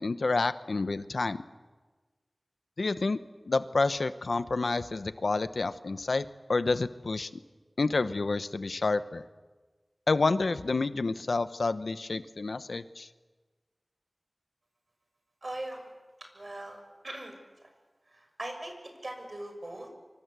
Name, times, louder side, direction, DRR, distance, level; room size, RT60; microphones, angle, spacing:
voice 1, 0.0-1.4 2.8-3.2 3.5-7.3 7.8-9.2 10.1-13.1, left 3 dB, 90° left, 12 dB, 0.9 m, -29 dB
voice 2, 15.4-15.9 16.3-16.8 17.0-17.3 18.4-18.7 19.0-19.9, right 1 dB, 55° right, 5 dB, 6.5 m, -39 dB
25.0 x 25.0 x 8.2 m, 1.3 s
wide cardioid pair, 45°, 0 cm